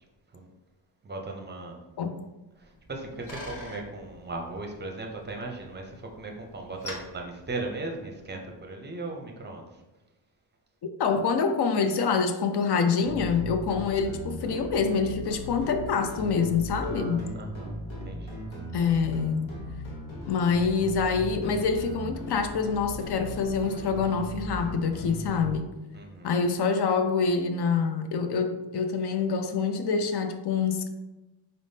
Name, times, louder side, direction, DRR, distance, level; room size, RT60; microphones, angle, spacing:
voice 1, 1.0-1.8 2.9-9.7 16.8-17.8 18.0-18.4 25.9-26.3, right 2 dB, 25° right, 2 dB, 0.5 m, -37 dB
Bicycle, 2.6-8.3, left 1 dB, 40° left, 1.0 m, -46 dB
voice 2, 11.0-17.3 18.7-19.5 20.3-25.7 26.2-30.9, left 5 dB, 60° left, 7 dB, 0.5 m, -26 dB
sound 1, 13.0-25.5, equal, 85° left, 1.0 m, -38 dB
4.1 x 3.4 x 2.7 m, 1.1 s
wide cardioid pair, 135°, 46 cm